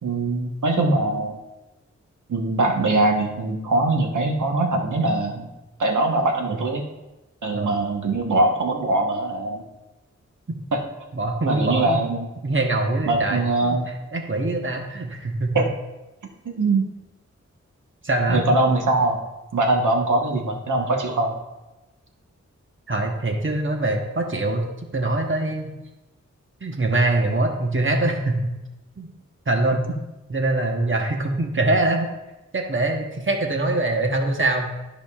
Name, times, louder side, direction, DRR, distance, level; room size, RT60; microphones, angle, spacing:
voice 1, 0.0-1.4 2.3-5.5 5.8-6.8 7.4-9.6 11.5-12.3 13.1-13.9 15.5-15.6 16.6-16.8 18.3-19.2 19.5-21.4, right 2 dB, 90° right, 2 dB, 1.1 m, -22 dB
voice 2, 11.1-12.0 12.4-13.8 14.1-15.6 18.0-18.4 22.9-24.6 24.9-25.7 26.6-28.5 29.0-29.1 29.5-29.9 30.3-32.1 32.5-34.7, right 2 dB, 40° right, 2 dB, 1.1 m, -23 dB
13.0 x 5.1 x 2.4 m, 1.0 s
wide cardioid pair, 60°, 30 cm